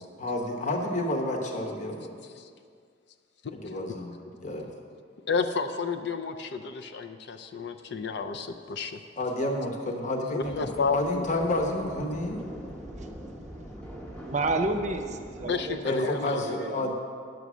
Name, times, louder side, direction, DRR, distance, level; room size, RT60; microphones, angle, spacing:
voice 1, 0.0-2.2 3.5-4.7 9.2-12.4 15.8-16.9, left 1 dB, 40° left, 2 dB, 1.0 m, -30 dB
voice 2, 5.3-9.0 10.2-11.2 15.5-16.7, left 4 dB, 60° left, 6 dB, 0.5 m, -31 dB
sound 1, 10.4-15.8, equal, 5° left, 0.9 m, -42 dB
voice 3, 14.2-16.9, right 2 dB, 35° right, 6 dB, 0.6 m, -31 dB
9.3 x 6.7 x 6.2 m, 2.1 s
head